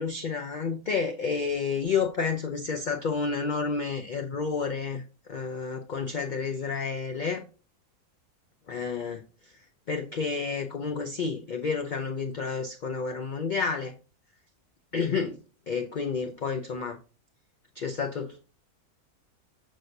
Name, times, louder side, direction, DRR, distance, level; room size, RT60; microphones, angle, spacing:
voice 1, 0.0-5.0 5.3-7.4 8.7-9.2 9.9-13.9 14.9-15.4 15.7-17.0 17.8-18.5, left 5 dB, 55° left, 4 dB, 0.5 m, -30 dB
6.3 x 6.1 x 2.6 m, 0.34 s
omnidirectional pair, 1.6 m